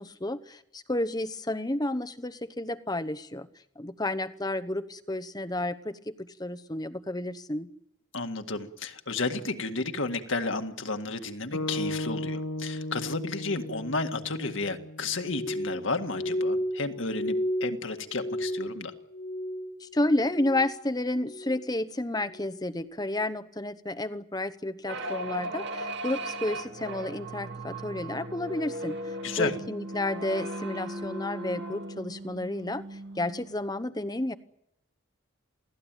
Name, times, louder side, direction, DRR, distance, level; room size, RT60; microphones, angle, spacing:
voice 1, 0.0-3.5 3.8-7.7 19.8-29.0 29.4-32.8 33.2-34.3, left 1 dB, 20° left, 12 dB, 1.0 m, -31 dB
voice 2, 8.1-18.9 29.2-29.5, left 3 dB, 65° left, 7 dB, 1.9 m, -32 dB
sound 1, 11.5-15.8, left 1 dB, 85° left, 1.0 m, -36 dB
Glass, 15.3-19.9 20.1-20.8 21.2-21.7 22.3-22.6, equal, 45° left, 2.0 m, -33 dB
sound 2, 24.9-33.6, right 1 dB, 55° right, 2.1 m, -37 dB
28.5 x 17.5 x 9.1 m, 0.82 s
head